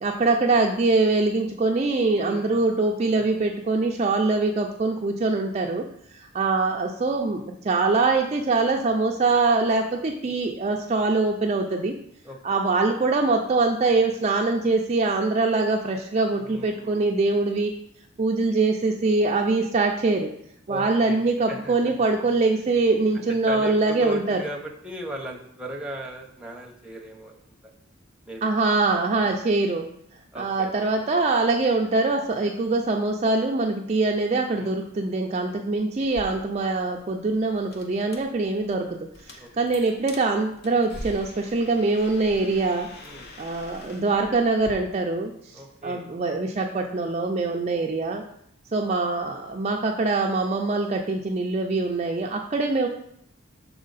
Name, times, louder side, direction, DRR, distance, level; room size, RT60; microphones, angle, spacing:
voice 1, 0.0-5.8 6.1-11.9 12.4-17.7 18.2-20.3 20.7-24.4 28.4-29.8 30.4-42.9 43.4-45.5 45.8-48.2 48.7-52.9, right 3 dB, 30° right, 1 dB, 0.4 m, -23 dB
voice 2, 2.2-2.8 3.2-3.4 12.2-12.6 16.3-17.1 20.7-21.2 21.5-21.9 23.1-27.3 28.3-28.5 29.2-29.4 30.3-30.8 34.5-34.8 39.4-39.8 43.0-43.3 45.5-46.1, right 1 dB, 5° right, 1 dB, 0.8 m, -37 dB
sound 1, 36.0-44.7, left 1 dB, 50° left, 0.8 m, -44 dB
6.3 x 4.3 x 4.0 m, 0.70 s
head